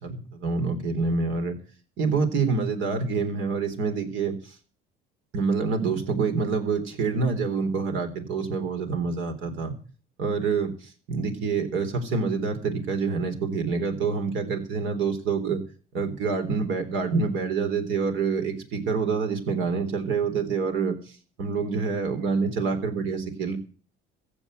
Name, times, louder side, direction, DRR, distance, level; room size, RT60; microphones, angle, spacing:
voice 1, 0.1-1.6 2.0-4.3 5.3-9.7 10.2-10.7 11.1-15.6 15.9-20.9 21.4-23.6, right 5 dB, 75° right, 7 dB, 3.7 m, -26 dB
15.5 x 6.8 x 9.3 m, 0.41 s
cardioid pair, 105°, 20 cm